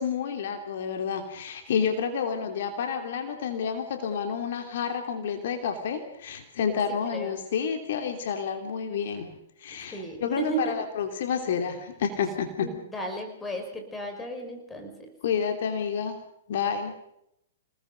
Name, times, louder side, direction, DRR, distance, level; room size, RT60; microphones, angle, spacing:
voice 1, 0.0-12.7 15.2-16.2 16.5-16.9, left 7 dB, 60° left, 6 dB, 3.0 m, -29 dB
voice 2, 9.9-10.9 12.6-15.1, right 2 dB, 10° left, 4 dB, 5.7 m, -34 dB
28.5 x 19.5 x 5.2 m, 0.78 s
hypercardioid pair, 115°, 0 cm